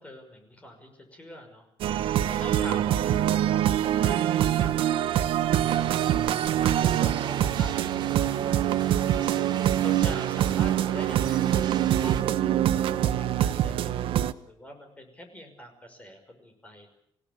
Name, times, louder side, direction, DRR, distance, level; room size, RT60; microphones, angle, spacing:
voice 1, 0.0-1.7 2.3-6.1 6.6-9.3 9.8-16.9, equal, 15° left, 5 dB, 5.7 m, -45 dB
sound 1, 1.8-14.3, right 11 dB, 85° right, 1.0 m, -24 dB
sound 2, 5.7-12.2, right 8 dB, 55° right, 1.9 m, -39 dB
26.5 x 17.0 x 8.2 m, 0.71 s
cardioid pair, 175°, 9 cm